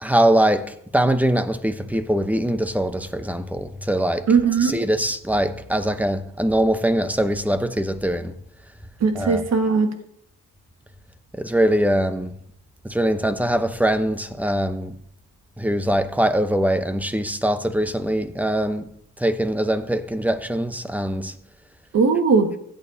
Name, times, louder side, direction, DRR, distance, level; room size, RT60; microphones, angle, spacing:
voice 1, 0.0-4.3 4.6-8.3 9.1-9.4 11.4-12.3 12.8-15.0 15.6-18.9 19.2-21.3, right 1 dB, 5° right, 0.9 m, -22 dB
voice 2, 4.3-4.8 9.0-9.9 21.9-22.5, right 5 dB, 60° right, 1.7 m, -18 dB
16.0 x 8.9 x 2.8 m
cardioid pair, 75°, 30 cm